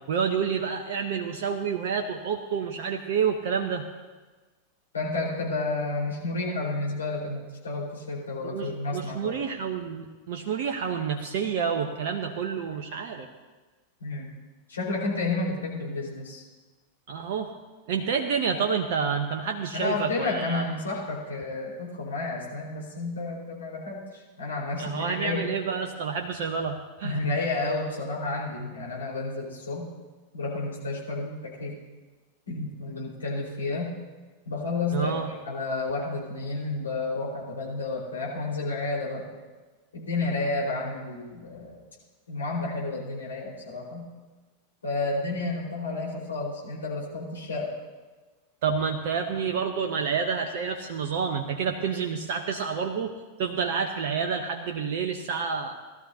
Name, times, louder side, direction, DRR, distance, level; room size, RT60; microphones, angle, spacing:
voice 1, 0.1-3.9 8.4-13.3 17.1-17.5 17.9-20.6 24.8-27.2 34.9-35.3 48.6-53.1 53.4-55.8, right 6 dB, 50° right, 4 dB, 0.9 m, -29 dB
voice 2, 4.9-9.4 14.0-14.3 14.7-16.4 19.7-25.5 27.0-29.9 30.3-31.7 32.5-34.0 34.4-35.1 35.4-39.3 39.9-41.8 42.3-44.1 44.8-47.7, left 3 dB, 70° left, -4 dB, 4.3 m, -31 dB
19.0 x 13.0 x 2.8 m, 1.3 s
figure-of-eight pair, 90°, 0 cm